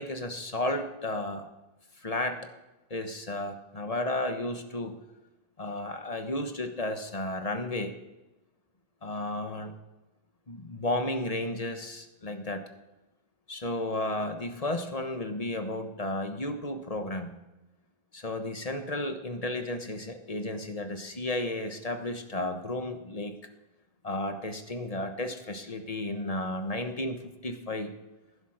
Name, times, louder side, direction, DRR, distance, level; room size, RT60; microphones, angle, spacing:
voice 1, 0.0-1.5 2.0-2.4 2.9-5.0 5.6-7.9 9.0-9.7 10.5-12.6 13.5-17.3 18.1-23.4 24.0-27.9, left 1 dB, 35° left, 6 dB, 1.3 m, -33 dB
15.5 x 10.5 x 6.5 m, 1.0 s
omnidirectional pair, 1.0 m